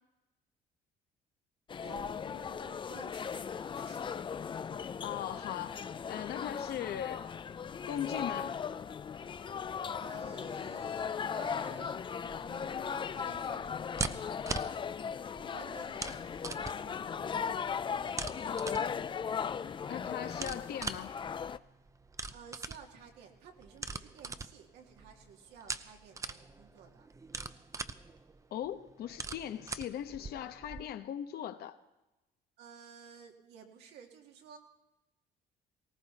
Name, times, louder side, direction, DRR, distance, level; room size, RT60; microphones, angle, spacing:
sound 1, 1.7-21.6, left 7 dB, 30° left, 0.5 m, -38 dB
voice 1, 1.8-4.2 10.0-12.0 12.4-14.8 15.4-16.1 16.5-17.6 22.3-27.1 32.6-34.6, right 7 dB, 85° right, 2.7 m, -54 dB
voice 2, 5.0-5.8 6.1-7.3 7.9-8.5 18.4-18.9 19.9-21.1 28.5-31.8, left 10 dB, 70° left, 1.1 m, -39 dB
sound 2, 12.2-30.8, right 3 dB, 20° right, 0.7 m, -43 dB
19.0 x 17.5 x 4.2 m
cardioid pair, 110°, 17 cm